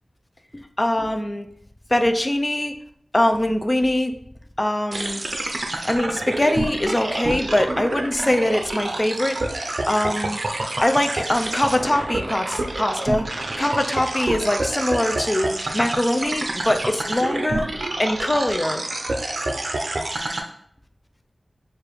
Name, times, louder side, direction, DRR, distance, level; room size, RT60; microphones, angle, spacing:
voice 1, 0.5-1.5 1.9-2.7 3.1-4.1 4.6-5.2 5.8-9.4 9.9-10.4 10.8-17.7 18.0-18.8, left 1 dB, 25° left, 6 dB, 0.4 m, -22 dB
sound 1, 4.9-20.4, right 2 dB, 60° right, 0.5 m, -28 dB
6.6 x 2.5 x 3.1 m, 0.69 s
wide cardioid pair, 80°, 0 cm